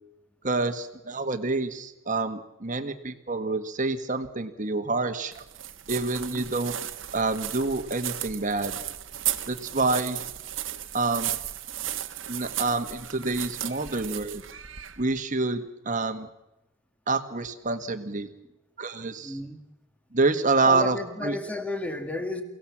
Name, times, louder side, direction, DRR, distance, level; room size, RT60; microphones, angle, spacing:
voice 1, 0.4-5.4 5.9-6.8 7.1-8.8 9.5-10.2 10.9-11.4 12.3-14.4 15.0-16.3 17.1-18.3 18.8-19.4 20.1-21.0 21.2-21.4, right 3 dB, 40° right, 1.6 m, -27 dB
sound 1, 5.3-15.2, right 12 dB, 70° right, 1.4 m, -35 dB
voice 2, 19.2-19.6 20.6-22.4, left 2 dB, 5° left, 1.9 m, -32 dB
29.5 x 17.5 x 7.4 m
head